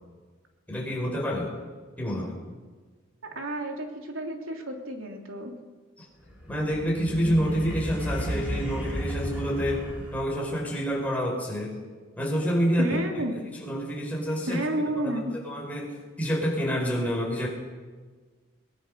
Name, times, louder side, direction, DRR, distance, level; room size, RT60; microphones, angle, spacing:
voice 1, 0.7-1.5 2.0-2.3 6.0-6.1 6.5-9.9 10.1-11.8 12.2-13.0 13.3-14.6 15.0-15.9 16.2-17.5, equal, 5° left, -2 dB, 5.5 m, -28 dB
voice 2, 3.3-5.5 12.8-13.4 14.5-15.3, right 1 dB, 85° right, 2 dB, 3.2 m, -31 dB
sound 1, 6.3-10.5, equal, 10° right, 5.3 m, -33 dB
22.0 x 22.0 x 6.7 m, 1.4 s
head